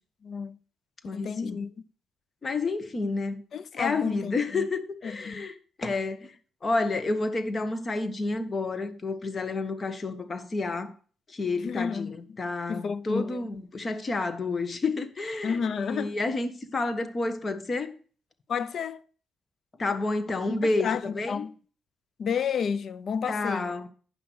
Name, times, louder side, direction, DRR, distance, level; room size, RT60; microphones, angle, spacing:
voice 1, 0.2-0.6 1.1-1.7 3.5-4.7 5.0-5.5 11.5-12.4 12.7-13.5 15.4-16.2 18.5-19.0 20.5-21.5 22.2-23.7, left 6 dB, 55° left, 0.7 m, -31 dB
voice 2, 1.0-1.6 2.4-3.4 3.7-5.5 5.8-6.3 6.6-10.9 11.3-15.6 15.9-17.9 19.8-21.5 23.3-23.9, left 3 dB, 35° left, 1.4 m, -30 dB
9.9 x 5.9 x 6.3 m
cardioid pair, 90°, 0 cm